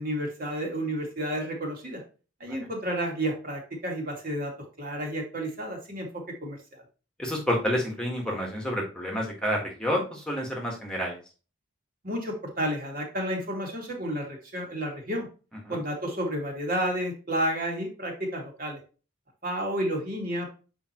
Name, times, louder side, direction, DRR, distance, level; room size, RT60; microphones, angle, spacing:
voice 1, 0.0-2.0 2.4-4.5 4.8-6.8 12.0-15.3 15.7-18.8 19.4-20.5, equal, 45° right, 0 dB, 2.4 m, -31 dB
voice 2, 7.2-11.2 15.6-15.8, equal, 5° left, -1 dB, 1.6 m, -29 dB
8.5 x 5.0 x 3.0 m, 0.34 s
head